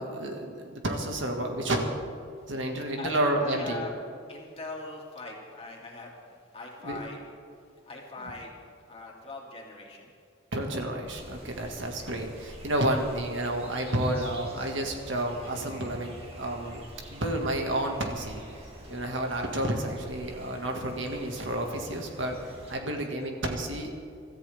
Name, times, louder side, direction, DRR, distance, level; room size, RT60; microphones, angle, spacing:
voice 1, 0.0-1.9 2.5-3.8 6.8-7.0 10.5-18.4 18.9-24.0, right 1 dB, 70° right, 2 dB, 2.1 m, -30 dB
voice 2, 3.0-3.9 4.3-6.1 6.5-7.2 7.8-8.6 8.9-10.1 11.6-11.7 18.8-19.1, left 3 dB, 30° left, -2 dB, 2.9 m, -41 dB
sound 1, 11.1-22.8, right 1 dB, 30° right, 2.4 m, -46 dB
25.0 x 14.0 x 3.7 m, 2.4 s
head